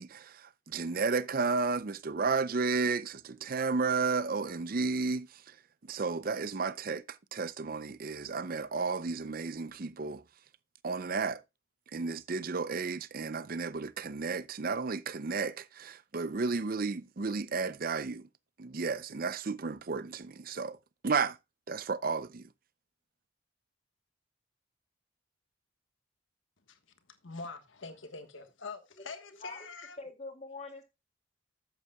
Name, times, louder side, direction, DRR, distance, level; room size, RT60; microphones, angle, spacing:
voice 1, 0.0-5.5 5.9-10.2 10.8-11.4 11.9-18.3 18.6-20.8 21.0-21.4 21.7-22.5, right 4 dB, 45° right, 0.5 m, -33 dB
voice 2, 27.2-30.0, left 4 dB, 70° left, 1.4 m, -44 dB
voice 3, 30.0-30.8, left 3 dB, 35° left, 2.2 m, -44 dB
12.0 x 8.3 x 2.3 m
head